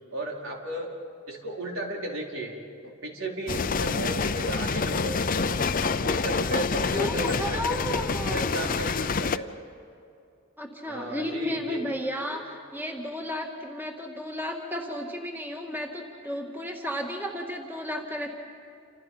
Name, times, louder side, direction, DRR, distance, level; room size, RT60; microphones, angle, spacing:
voice 1, 0.1-0.9 1.3-9.5 10.9-11.8 12.3-12.4, right 1 dB, 80° right, -1 dB, 4.6 m, -35 dB
sound 1, 3.5-9.4, left 4 dB, 40° left, 0.6 m, -27 dB
voice 2, 6.9-8.8 10.6-18.3, equal, 10° right, 1 dB, 2.1 m, -33 dB
29.5 x 28.0 x 5.7 m, 2.5 s
head